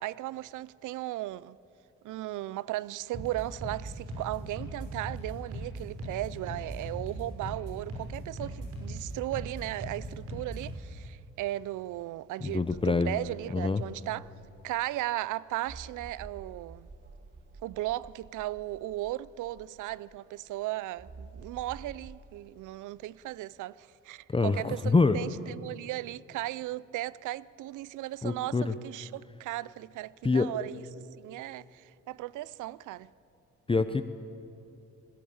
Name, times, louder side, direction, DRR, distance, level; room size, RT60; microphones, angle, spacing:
voice 1, 0.0-1.6 2.0-14.3 14.6-16.9 17.6-30.8 31.2-33.1, right 16 dB, 80° right, 0.5 m, -36 dB
sound 1, 3.1-10.7, right 1 dB, 50° right, 6.2 m, -39 dB
voice 2, 12.4-13.1 13.5-13.8 24.3-25.2 28.2-28.7 30.2-30.5 33.7-34.0, left 3 dB, 20° left, 0.7 m, -25 dB
sound 2, 12.5-15.0 15.6-20.3 21.0-22.2, right 3 dB, 35° right, 1.6 m, -50 dB
20.5 x 17.0 x 8.7 m
cardioid pair, 90°, 30 cm